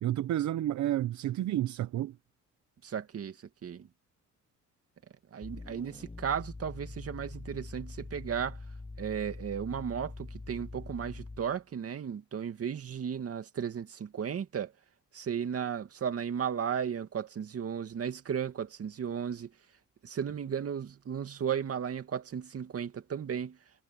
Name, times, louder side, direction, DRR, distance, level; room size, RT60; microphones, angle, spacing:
voice 1, 0.0-2.2, right 13 dB, 70° right, 0.9 m, -30 dB
voice 2, 2.8-3.4 3.6-3.9 5.3-8.6 9.0-14.7 15.1-19.5 20.0-23.6, right 8 dB, 50° right, 2.3 m, -35 dB
sound 1, 5.4-11.6, left 3 dB, 20° left, 7.5 m, -44 dB
cardioid pair, 90°, 30 cm